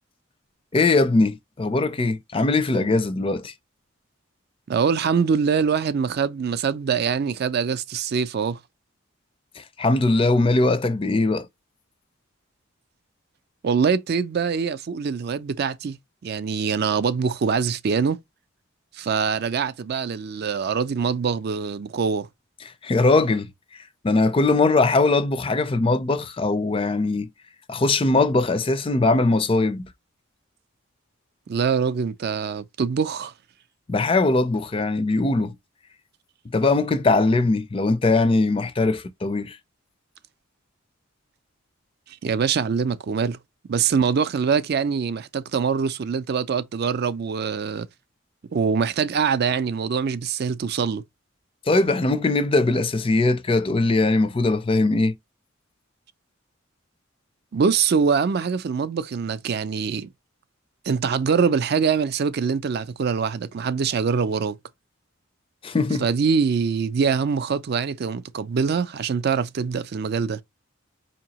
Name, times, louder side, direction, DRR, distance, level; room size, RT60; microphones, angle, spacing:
voice 1, 0.7-3.5 9.6-11.5 22.8-23.5 24.0-27.3 27.7-29.9 33.9-35.5 36.5-39.6 51.7-55.1 65.6-66.0, left 3 dB, 25° left, 0.4 m, -21 dB
voice 2, 4.7-8.6 13.6-16.0 16.2-18.2 18.9-22.3 31.5-33.3 42.1-43.4 43.7-47.9 48.5-51.0 57.5-60.1 60.8-64.6 66.0-70.4, right 6 dB, 50° right, 0.4 m, -24 dB
4.5 x 2.9 x 2.8 m
head